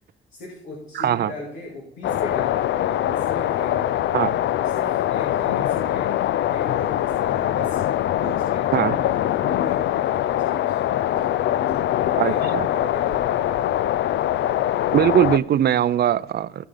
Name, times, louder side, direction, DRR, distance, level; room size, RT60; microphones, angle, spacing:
voice 1, 0.3-4.0 4.5-6.2 6.5-7.8 8.2-13.9, left 2 dB, 90° left, -2 dB, 2.2 m, -37 dB
voice 2, 0.9-1.3 4.1-4.3 8.7-9.0 12.2-12.7 14.9-16.7, right 10 dB, 55° right, 16 dB, 0.5 m, -20 dB
sound 1, 2.0-15.4, left 12 dB, 65° left, 0.4 m, -23 dB
15.5 x 5.4 x 3.9 m, 0.79 s
cardioid pair, 90°, 20 cm